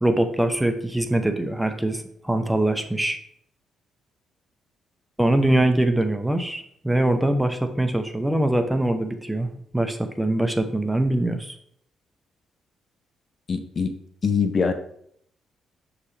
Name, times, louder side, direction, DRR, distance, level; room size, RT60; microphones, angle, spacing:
voice 1, 0.0-3.2 5.2-9.5 9.7-11.5, right 1 dB, 5° right, 7 dB, 0.7 m, -23 dB
voice 2, 13.5-13.9 14.2-14.7, left 5 dB, 45° left, 8 dB, 0.7 m, -23 dB
6.9 x 4.8 x 3.3 m, 0.66 s
cardioid pair, 90°, 0 cm